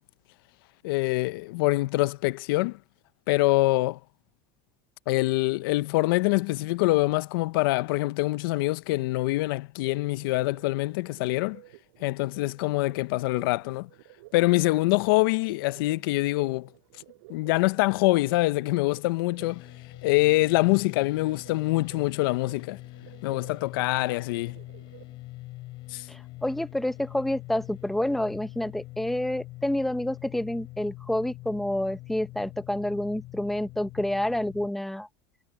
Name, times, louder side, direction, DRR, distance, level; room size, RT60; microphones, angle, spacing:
voice 1, 0.8-2.8 3.3-4.0 5.1-11.6 12.0-13.9 14.3-16.7 17.3-19.6 20.0-22.8 23.2-24.5 25.9-26.0, left 21 dB, 75° left, 0.6 m, -25 dB
sound 1, 9.8-25.2, right 22 dB, 75° right, 6.8 m, -53 dB
sound 2, 19.4-34.7, left 18 dB, 45° left, 5.0 m, -44 dB
voice 2, 26.1-35.1, left 1 dB, ahead, 0.7 m, -28 dB
cardioid pair, 170°, 12 cm